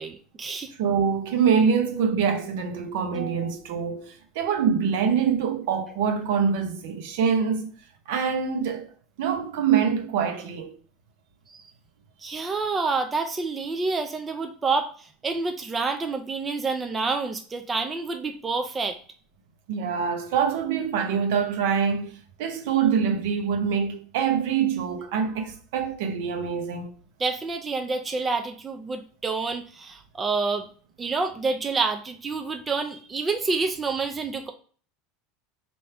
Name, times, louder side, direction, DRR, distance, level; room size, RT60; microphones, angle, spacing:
voice 1, 0.0-0.7 11.5-11.6 12.2-14.9 15.2-19.0 27.2-30.7 31.0-34.5, right 4 dB, 15° right, 0.4 m, -28 dB
voice 2, 0.8-7.7 8.1-8.9 9.2-10.7 19.7-22.1 22.4-26.9, right 7 dB, 70° right, 0.8 m, -25 dB
4.4 x 2.6 x 3.3 m
supercardioid pair, 150°, 0 cm